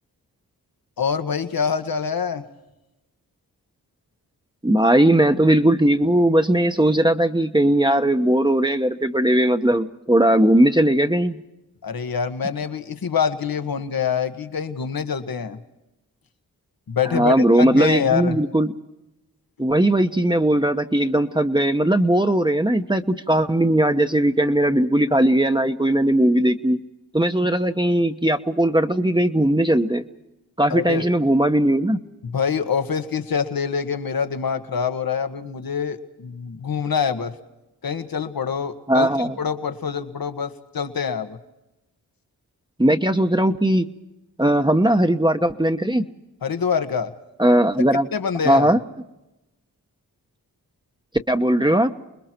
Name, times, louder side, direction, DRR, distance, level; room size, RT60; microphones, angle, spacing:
voice 1, 1.0-2.4 11.8-15.6 16.9-18.4 30.7-31.0 32.2-37.3 37.8-41.4 46.4-47.1 48.1-48.7, left 6 dB, 65° left, 9 dB, 1.5 m, -25 dB
voice 2, 4.6-11.4 17.1-18.7 19.6-26.8 27.1-30.0 30.6-32.0 38.9-39.4 42.8-43.9 44.4-46.1 47.4-48.1 48.4-48.8 51.3-51.9, right 1 dB, 10° right, 6 dB, 1.1 m, -18 dB
29.5 x 21.0 x 4.5 m, 0.95 s
cardioid pair, 40°, 39 cm